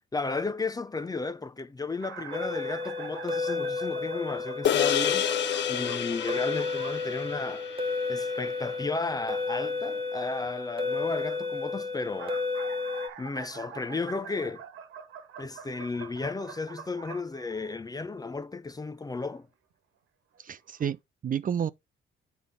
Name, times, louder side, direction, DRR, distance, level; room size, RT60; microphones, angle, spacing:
voice 1, 0.1-5.3 5.7-7.7 8.1-12.4 13.2-14.6 15.4-19.5, left 3 dB, 20° left, 0.6 m, -34 dB
sound 1, 2.0-7.0 11.9-18.0 19.1-19.3 20.3-20.4 20.8-20.9, right 8 dB, 85° right, 1.3 m, -45 dB
sound 2, 2.3-13.1, left 3 dB, 25° right, 1.4 m, -32 dB
sound 3, 4.6-9.2, left 11 dB, 65° left, 0.6 m, -31 dB
voice 2, 20.4-21.7, right 8 dB, 45° right, 0.7 m, -31 dB
8.3 x 3.5 x 5.3 m
cardioid pair, 90°, 20 cm